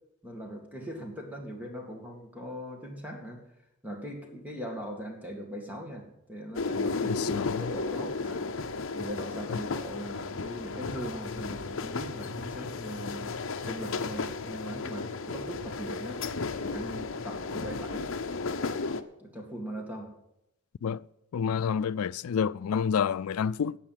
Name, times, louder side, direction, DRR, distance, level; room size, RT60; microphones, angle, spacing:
voice 1, 0.2-3.4 3.8-8.5 8.9-13.4 13.7-16.2 16.6-18.1 19.2-20.1, equal, 5° right, 2.1 m, -40 dB
sound 1, 6.5-19.0, left 4 dB, 65° left, 0.7 m, -34 dB
voice 2, 7.1-7.7 9.5-9.6 20.8-21.0 21.3-23.8, left 7 dB, 80° left, 0.4 m, -29 dB
17.0 x 5.7 x 7.6 m
head